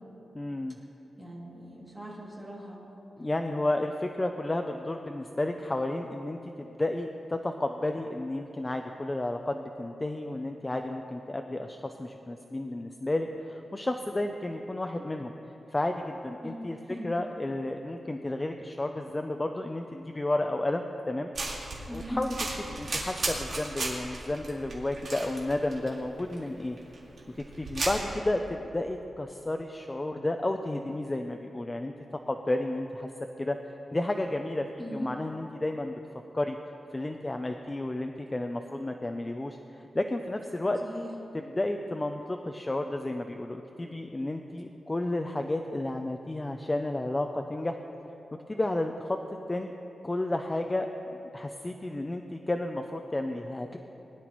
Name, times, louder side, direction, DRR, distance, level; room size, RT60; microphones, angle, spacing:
voice 1, 0.3-0.8 3.2-15.3 15.7-16.8 17.0-21.3 21.9-26.8 27.6-31.9 32.3-33.1 33.4-33.6 33.9-34.6 34.9-35.9 36.3-36.6 36.9-40.8 41.3-47.8 48.5-49.2 49.5-49.7 50.0-50.9 51.3-53.8, left 1 dB, 15° left, 4 dB, 0.4 m, -32 dB
voice 2, 1.2-2.8 16.4-16.5 16.8-17.1 21.9-22.2 34.8-35.1 40.8-41.1, equal, 10° right, -5 dB, 2.4 m, -39 dB
sound 1, 21.3-28.0, right 2 dB, 50° right, 2.0 m, -36 dB
20.5 x 11.0 x 3.0 m, 3.0 s
wide cardioid pair, 180°, 0 cm